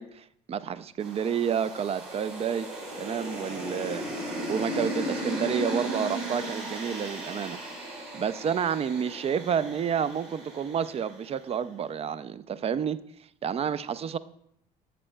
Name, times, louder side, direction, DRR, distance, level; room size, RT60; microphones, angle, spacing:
voice 1, 0.0-2.7 3.0-7.7 8.1-13.0 13.4-14.2, right 7 dB, 30° right, 0.4 m, -30 dB
sound 1, 1.0-11.3, right 1 dB, 65° right, 3.2 m, -36 dB
11.0 x 7.8 x 2.2 m
hypercardioid pair, 55°, 20 cm